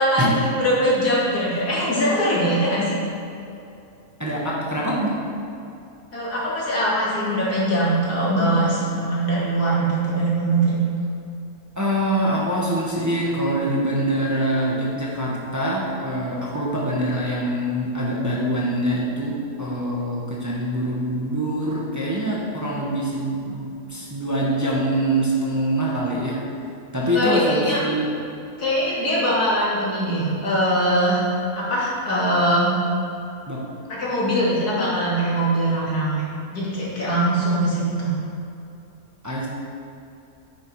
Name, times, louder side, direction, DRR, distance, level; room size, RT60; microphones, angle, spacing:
voice 1, 0.0-2.9 6.1-10.8 27.1-27.8 28.6-31.2 31.5-32.7 33.9-36.2 36.5-38.2, right 1 dB, 85° left, -8 dB, 3.1 m, -22 dB
voice 2, 4.2-5.2 11.8-26.4 26.9-28.1 33.5-33.6 34.3-34.4 39.2-39.5, right 1 dB, 10° right, -5 dB, 1.2 m, -24 dB
9.6 x 6.8 x 4.8 m, 2.7 s
omnidirectional pair, 1.6 m